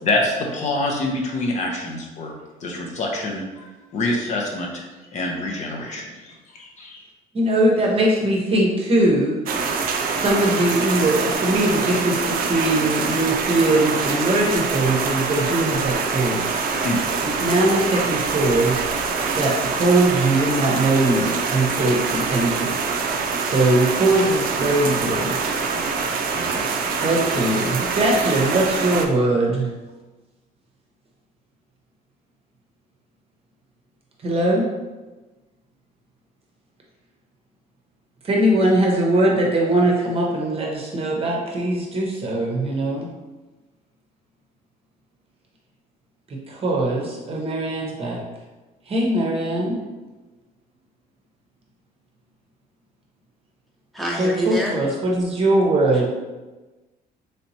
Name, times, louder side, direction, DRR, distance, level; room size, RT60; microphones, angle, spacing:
voice 1, 0.0-2.3 2.6-4.7 5.1-7.0 10.1-10.2 16.8-17.1 25.7-26.0 26.3-26.6, left 2 dB, 45° left, 0 dB, 0.7 m, -26 dB
voice 2, 7.3-9.4 10.1-16.6 17.2-18.8 19.4-22.8 23.4-25.4 27.0-29.7 34.2-34.7 38.2-43.1 46.3-48.2 48.9-49.8 54.2-56.1, right 1 dB, 35° right, -2 dB, 0.8 m, -21 dB
sound 1, 9.5-29.1, right 5 dB, 60° right, 0.4 m, -25 dB
voice 3, 53.9-55.1, right 1 dB, ahead, -4 dB, 0.8 m, -26 dB
3.3 x 2.8 x 2.7 m, 1.2 s
cardioid pair, 110°, 17 cm